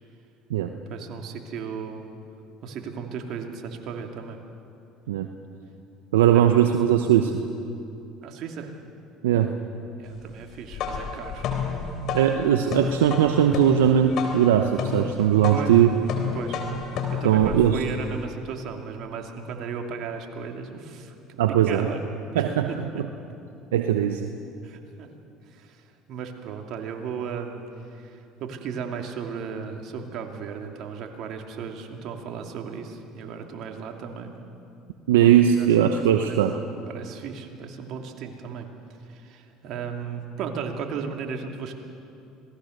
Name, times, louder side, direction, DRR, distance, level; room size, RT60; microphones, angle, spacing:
voice 1, 0.9-2.1 2.6-4.4 8.2-8.8 10.0-11.5 15.5-15.8 16.3-16.6 17.2-21.4 21.7-22.0 22.3-23.0 24.6-25.1 25.4-34.4 35.2-35.3 35.6-38.7 39.0-41.7, right 6 dB, 60° right, 3 dB, 2.8 m, -35 dB
voice 2, 6.1-7.3 9.2-9.5 12.1-15.9 17.2-17.8 21.4-21.9 22.4-22.7 23.7-24.3 35.1-36.5, right 10 dB, 85° right, 6 dB, 0.9 m, -19 dB
sound 1, 10.5-18.2, left 5 dB, 60° left, 3.6 m, -31 dB
26.5 x 19.0 x 6.6 m, 2.7 s
hypercardioid pair, 75°, 0 cm